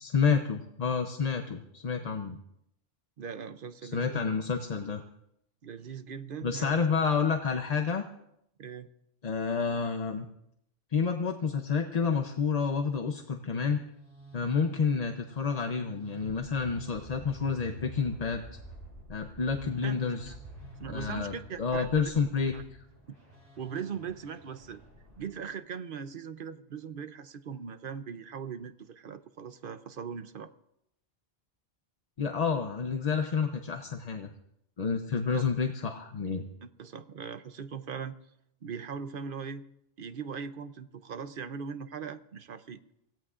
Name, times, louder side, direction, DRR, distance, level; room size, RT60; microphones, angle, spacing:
voice 1, 0.0-2.4 3.8-5.0 6.4-8.0 9.2-10.3 10.9-13.8 14.3-18.4 19.1-20.3 20.9-22.5 32.2-34.3 34.8-36.4, left 5 dB, 45° left, 5 dB, 0.8 m, -29 dB
voice 2, 3.2-4.2 5.6-6.8 8.6-8.9 19.8-20.4 20.8-22.1 22.5-22.6 23.6-24.8 25.2-30.5 35.3-35.4 36.6-38.1 38.6-39.6 40.0-42.8, right 6 dB, 60° right, 11 dB, 0.9 m, -40 dB
sound 1, 13.6-25.5, right 2 dB, 85° right, 5.8 m, -48 dB
25.5 x 17.0 x 2.5 m, 0.78 s
omnidirectional pair, 1.1 m